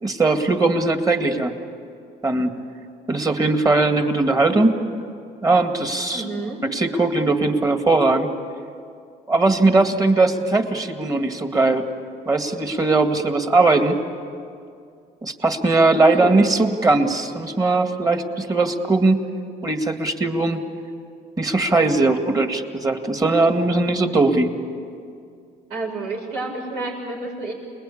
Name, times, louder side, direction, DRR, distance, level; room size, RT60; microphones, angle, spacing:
voice 1, 0.0-1.6 2.2-2.6 3.1-4.8 5.4-6.2 6.6-8.3 9.3-11.8 12.3-14.0 15.2-19.2 19.6-20.6 21.4-24.5, right 3 dB, 20° right, 6 dB, 2.1 m, -19 dB
voice 2, 6.1-6.6 16.0-16.4 25.7-27.5, right 3 dB, 85° right, -1 dB, 7.2 m, -29 dB
29.0 x 20.5 x 8.6 m, 2.4 s
cardioid pair, 110°, 17 cm